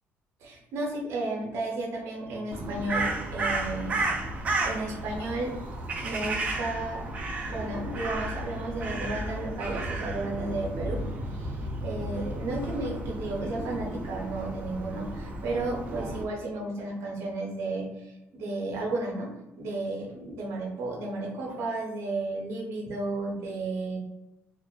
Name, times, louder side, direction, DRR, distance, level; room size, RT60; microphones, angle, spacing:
voice 1, 0.4-4.0 4.6-5.6 6.0-7.0 7.5-11.0 11.3-19.3 19.6-24.0, right 2 dB, 70° right, -2 dB, 0.7 m, -33 dB
Crow, 2.5-16.2, right 2 dB, 30° right, 0.4 m, -33 dB
2.5 x 2.4 x 2.3 m, 0.95 s
cardioid pair, 150°, 5 cm